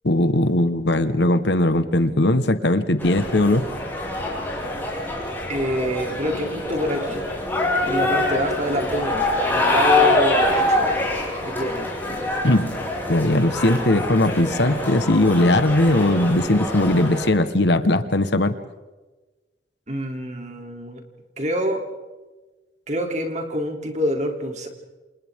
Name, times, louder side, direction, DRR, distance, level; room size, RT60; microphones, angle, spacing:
voice 1, 0.0-3.6 12.4-12.7 13.1-18.5, left 1 dB, 70° left, 10 dB, 1.4 m, -19 dB
sound 1, 3.0-17.3, left 2 dB, 10° left, 5.9 m, -24 dB
voice 2, 5.5-7.3 7.9-10.9 11.4-11.9 19.9-21.0 21.4-21.8 22.9-24.7, equal, 40° right, 3 dB, 3.1 m, -26 dB
29.0 x 27.5 x 3.7 m, 1.2 s
head